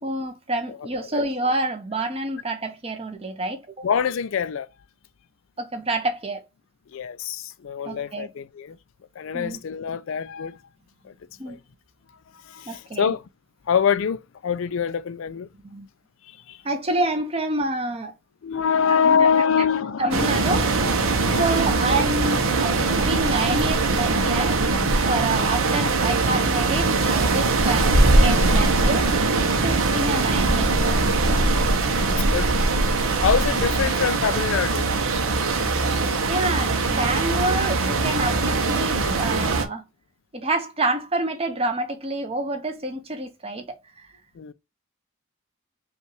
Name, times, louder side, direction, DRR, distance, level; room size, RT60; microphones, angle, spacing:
voice 1, 0.0-3.6 5.6-6.4 7.8-8.3 9.3-9.6 11.4-11.6 12.7-13.1 15.6-15.9 16.6-18.1 19.0-19.3 20.0-21.0 21.4-24.5 25.1-29.1 29.6-31.0 36.3-39.8 40.3-43.8, right 2 dB, 25° right, 0.8 m, -27 dB
voice 2, 3.8-4.7 6.9-8.8 9.2-10.6 11.0-11.1 11.5-11.6 12.4-13.2 13.7-15.5 16.3-16.6 18.4-20.3 20.9-21.5 31.5-31.6 31.9-34.9 44.4-44.5, left 7 dB, 65° left, 0.4 m, -25 dB
sound 1, 20.1-39.6, right 3 dB, 70° right, 0.8 m, -21 dB
5.2 x 2.4 x 3.1 m
head